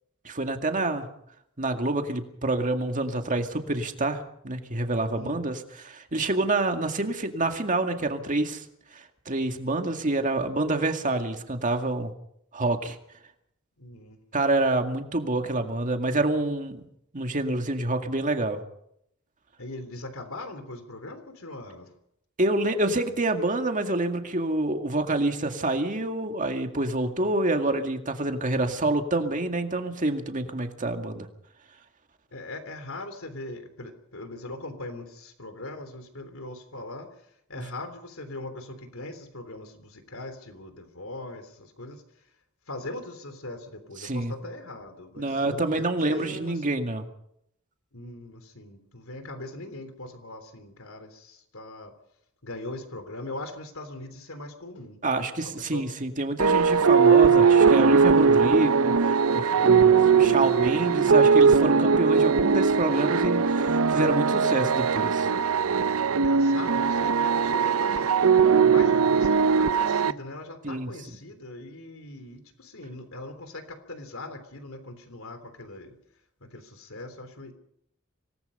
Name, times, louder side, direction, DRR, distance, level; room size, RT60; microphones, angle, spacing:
voice 1, 0.2-1.1 1.6-5.6 5.8-8.6 8.9-12.1 12.5-13.0 14.3-16.9 17.1-18.6 22.4-31.3 44.0-44.3 45.2-47.0 55.0-65.3 70.6-70.9, right 2 dB, 40° right, 5 dB, 2.1 m, -27 dB
voice 2, 5.1-5.4 13.8-14.3 19.6-21.9 32.3-42.3 42.7-46.6 47.9-51.9 52.4-55.0 55.4-55.9 60.1-60.5 66.1-76.0 76.4-77.5, left 2 dB, 75° left, 9 dB, 3.4 m, -40 dB
sound 1, 56.4-70.1, right 5 dB, 90° right, 0.7 m, -20 dB
25.5 x 18.5 x 5.5 m, 0.73 s
head